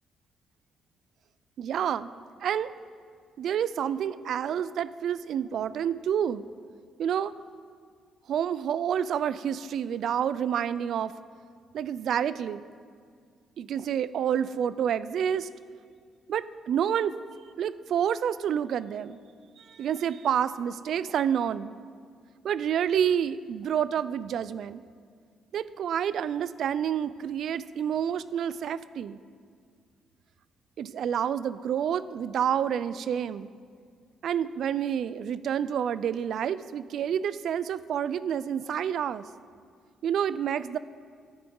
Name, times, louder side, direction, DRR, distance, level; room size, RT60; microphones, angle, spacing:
voice 1, 1.6-2.1 2.4-2.7 3.4-6.4 7.0-7.3 8.3-11.2 11.7-12.6 13.6-15.5 16.3-17.2 17.6-19.2 19.6-21.7 22.4-24.8 25.5-29.2 30.8-33.5 34.2-39.3 40.0-40.8, right 9 dB, 70° right, 16 dB, 0.3 m, -28 dB
14.0 x 9.6 x 3.8 m, 2.1 s
cardioid pair, 90°, 0 cm